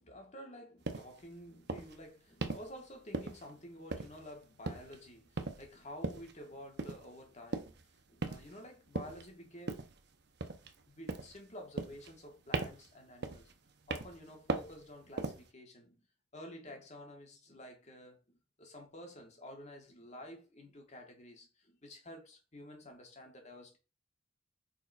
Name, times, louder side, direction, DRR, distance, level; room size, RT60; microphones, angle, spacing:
voice 1, 0.0-7.8 8.1-9.9 10.9-13.5 13.9-16.0 16.3-23.8, equal, 35° left, 2.0 m, -51 dB
sound 1, 0.9-1.1 1.7-2.0 2.4-2.7 3.1-3.6 3.9-4.3 4.7-5.0 5.4-5.7 6.0-6.3 6.8-7.1 7.5-7.8 8.2-8.6 9.0-9.2 9.7-10.0 10.4-10.8 11.1-11.4 11.8-12.3 12.5-12.9 13.2-13.5 13.9-14.2 14.5-14.8 15.2-15.5, right 3 dB, 60° right, 1.0 m, -38 dB
5.9 x 4.8 x 4.5 m
head